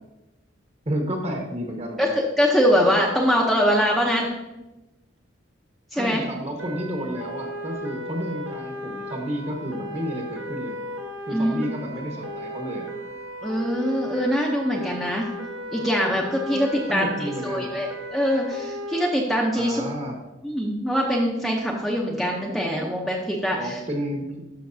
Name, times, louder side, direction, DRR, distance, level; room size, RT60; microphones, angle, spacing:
voice 1, 0.8-2.1 5.9-10.8 11.3-12.9 16.5-16.6 16.9-17.8 19.5-20.1 23.5-24.5, equal, 35° right, 2 dB, 1.3 m, -31 dB
voice 2, 2.0-4.3 5.9-6.2 11.3-11.7 13.4-15.3 15.7-19.8 20.4-23.8, equal, ahead, -3 dB, 0.7 m, -23 dB
sound 1, 6.6-19.1, equal, 90° right, 1.0 m, -35 dB
12.5 x 5.9 x 2.7 m, 1.0 s
head